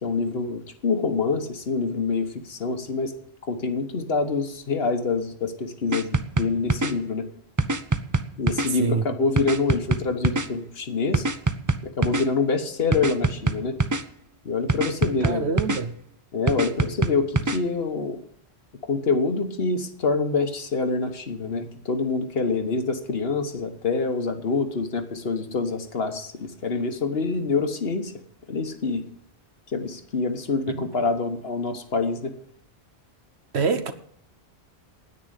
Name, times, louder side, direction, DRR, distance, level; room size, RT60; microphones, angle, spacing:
voice 1, 0.0-3.1 3.4-7.3 8.4-11.3 11.8-13.8 14.4-15.6 16.3-18.2 18.8-28.1 28.5-29.1 29.7-32.3, left 4 dB, 65° left, 1.5 m, -26 dB
sound 1, 5.9-6.9 7.6-8.7 9.4-10.5 11.1-12.3 12.9-14.0 14.7-15.8 16.5-17.6, right 3 dB, 25° right, 0.4 m, -24 dB
voice 2, 15.2-15.9 33.5-33.9, right 5 dB, 75° right, 1.2 m, -25 dB
9.9 x 9.0 x 8.2 m
omnidirectional pair, 1.1 m